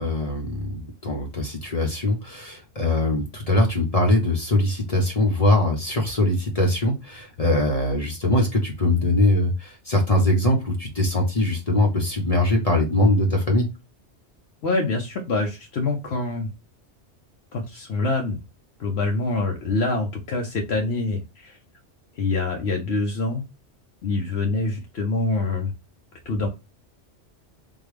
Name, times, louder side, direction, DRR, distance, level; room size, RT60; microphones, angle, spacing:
voice 1, 0.0-13.7, left 1 dB, 35° left, 1 dB, 0.8 m, -22 dB
voice 2, 14.6-16.5 17.5-18.4 18.8-21.6 22.2-23.4 24.0-25.7 26.3-26.5, left 3 dB, 65° left, 2 dB, 0.9 m, -25 dB
3.6 x 2.3 x 3.1 m, 0.26 s
omnidirectional pair, 1.2 m